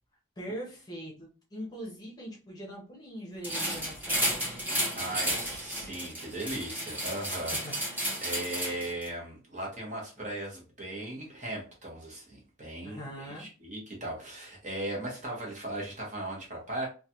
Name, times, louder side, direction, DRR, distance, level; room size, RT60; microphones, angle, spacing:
voice 1, 0.4-4.6 5.2-5.6 7.6-8.0 12.8-13.5, equal, 20° left, -2 dB, 0.8 m, -42 dB
sound 1, 3.4-9.1, right 1 dB, 10° right, 0.9 m, -32 dB
voice 2, 4.9-7.9 8.2-16.9, right 1 dB, 35° right, -2 dB, 1.1 m, -38 dB
3.1 x 2.3 x 2.8 m, 0.35 s
head